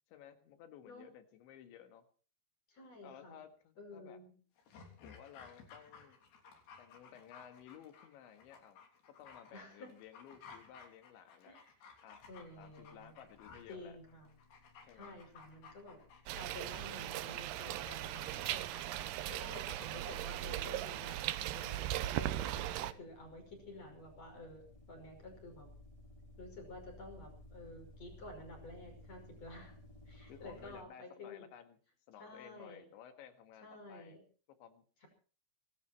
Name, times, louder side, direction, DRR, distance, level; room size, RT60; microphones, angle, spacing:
voice 1, 0.1-2.1 3.0-4.2 5.0-6.2 6.8-8.8 9.1-11.6 12.0-12.2 12.6-14.0 14.8-15.2 30.3-31.8 32.1-34.2 34.6-35.1, left 9 dB, 90° left, 8 dB, 4.2 m, -56 dB
voice 2, 2.7-3.4 3.8-4.3 9.5-9.9 11.5-11.7 12.3-13.1 13.7-14.3 14.9-16.0 16.3-25.7 26.4-29.7 30.1-31.5 32.2-32.9 33.6-34.2 35.0-35.1, left 2 dB, 35° left, 3 dB, 6.6 m, -51 dB
Dog, 4.6-20.8 21.1-21.2, left 5 dB, 70° left, 5.5 m, -58 dB
sound 1, 12.2-30.8, left 1 dB, 5° left, 5.1 m, -60 dB
sound 2, 16.3-22.9, right 14 dB, 75° right, 2.7 m, -38 dB
24.5 x 13.0 x 4.5 m, 0.41 s
omnidirectional pair, 5.1 m